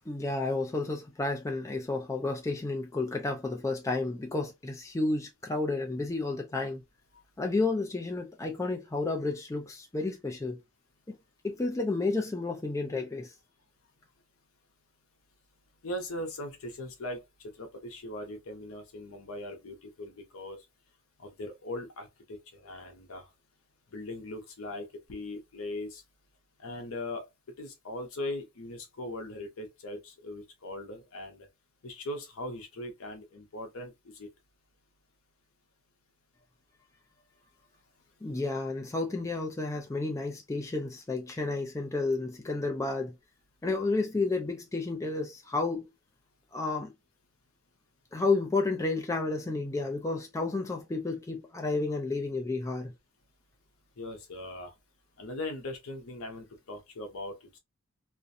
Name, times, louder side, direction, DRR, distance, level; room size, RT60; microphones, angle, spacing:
voice 1, 0.1-6.8 7.4-10.6 11.1-11.2 11.4-13.3 38.2-43.1 43.6-45.9 46.5-46.9 48.1-52.9, left 3 dB, 15° left, 0.3 m, -31 dB
voice 2, 15.8-20.6 21.2-23.3 23.9-26.0 26.6-27.3 27.6-31.5 31.8-34.3 54.0-54.7 55.2-57.6, left 1 dB, 70° left, 0.7 m, -40 dB
2.4 x 2.1 x 2.5 m
head